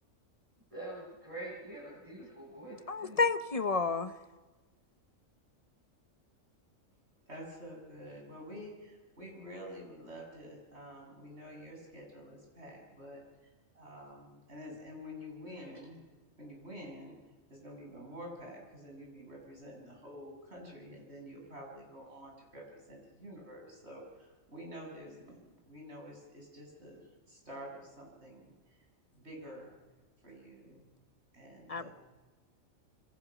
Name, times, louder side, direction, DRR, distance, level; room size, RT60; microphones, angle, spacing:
voice 1, 0.7-3.2 15.6-15.7, right 1 dB, 25° right, -7 dB, 7.6 m, -45 dB
voice 2, 2.9-4.1 31.7-31.9, left 4 dB, 30° left, 11 dB, 1.0 m, -30 dB
voice 3, 7.3-16.0 16.4-17.2 17.5-28.8 29.1-29.7 30.2-30.8 31.3-31.9, equal, 55° right, -1 dB, 7.7 m, -48 dB
27.0 x 25.0 x 6.2 m, 1.2 s
omnidirectional pair, 1.4 m